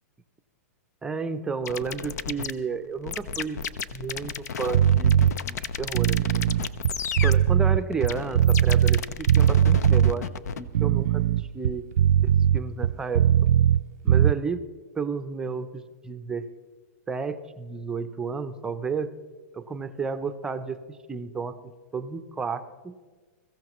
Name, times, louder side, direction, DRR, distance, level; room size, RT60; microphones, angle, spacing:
voice 1, 1.0-3.6 3.9-6.5 7.2-10.3 10.6-11.9 12.2-13.5 14.0-14.6 14.9-16.5 17.1-19.1 19.5-23.0, right 5 dB, 10° right, 9 dB, 0.5 m, -32 dB
sound 1, 1.7-10.6, left 6 dB, 80° left, 0.7 m, -33 dB
sound 2, 4.7-5.3 5.9-9.0 9.3-10.1 10.7-13.8 14.1-14.3, right 10 dB, 75° right, 0.4 m, -20 dB
22.0 x 15.0 x 3.0 m, 1.4 s
hypercardioid pair, 155°, 9 cm